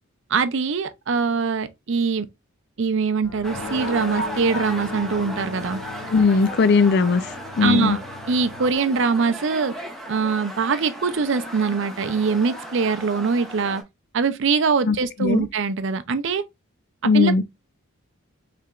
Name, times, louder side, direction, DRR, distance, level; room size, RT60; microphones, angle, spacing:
voice 1, 0.3-2.3 2.8-5.8 7.6-8.0 8.3-9.7 10.1-13.8 14.1-16.4 17.1-17.4, right 5 dB, 60° right, 0.5 m, -23 dB
sound 1, 3.2-8.8, left 2 dB, 70° left, 1.9 m, -37 dB
sound 2, 3.4-13.8, equal, ahead, 1.1 m, -36 dB
voice 2, 6.1-7.2 7.6-8.0 14.9-15.0 15.2-15.5 17.0-17.4, left 4 dB, 50° left, 0.4 m, -18 dB
4.7 x 3.4 x 2.4 m
head